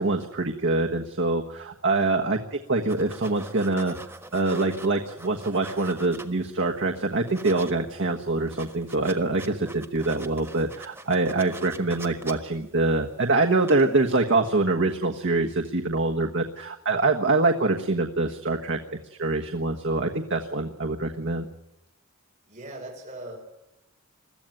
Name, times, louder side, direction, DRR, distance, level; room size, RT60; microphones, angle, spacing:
voice 1, 0.0-4.0 4.3-18.8 19.2-21.5, right 3 dB, 60° right, 3 dB, 1.4 m, -25 dB
sound 1, 2.9-6.6 7.0-7.7 8.0-8.1 8.3-13.2 13.6-14.0, right 2 dB, 10° right, 1.4 m, -44 dB
voice 2, 22.5-23.4, right 1 dB, 35° right, -2 dB, 5.9 m, -39 dB
22.0 x 15.0 x 9.2 m, 0.93 s
head